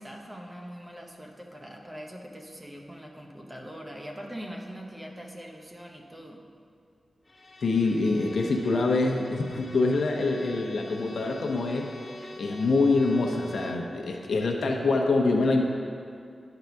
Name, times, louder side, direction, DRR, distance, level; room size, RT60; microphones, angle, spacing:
voice 1, 0.0-6.4, equal, 15° right, 0 dB, 0.7 m, -42 dB
Bowed string instrument, 7.3-13.9, left 2 dB, 30° left, 0.7 m, -45 dB
voice 2, 7.6-11.9 12.4-15.6, left 3 dB, 80° left, 2 dB, 0.9 m, -25 dB
11.0 x 4.0 x 5.7 m, 2.3 s
wide cardioid pair, 165°, 0 cm